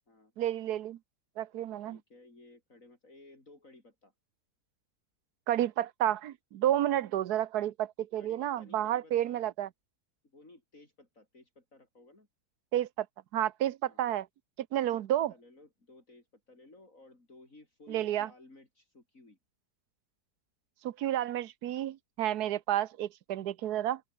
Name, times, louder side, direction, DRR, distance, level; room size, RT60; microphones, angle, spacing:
voice 1, 0.4-1.0 1.4-2.0 5.5-9.7 12.7-13.1 13.3-14.3 14.7-15.3 17.9-18.3 20.8-24.0, right 12 dB, 75° right, 1.3 m, -31 dB
voice 2, 1.8-4.1 8.2-9.5 10.2-12.3 13.8-14.0 14.9-19.4, left 2 dB, 55° left, 5.7 m, -57 dB
open air
omnidirectional pair, 1.7 m